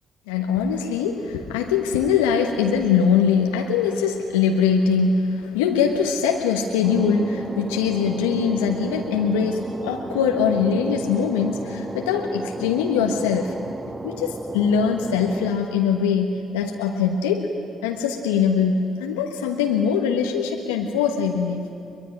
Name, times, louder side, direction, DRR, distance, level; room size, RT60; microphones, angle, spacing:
voice 1, 0.3-13.5 14.0-17.5 17.8-21.6, left 6 dB, 85° left, 3 dB, 1.3 m, -22 dB
sound 1, 6.8-15.5, right 2 dB, 25° right, 1.4 m, -34 dB
23.0 x 22.5 x 10.0 m, 2.7 s
hypercardioid pair, 45°, 0 cm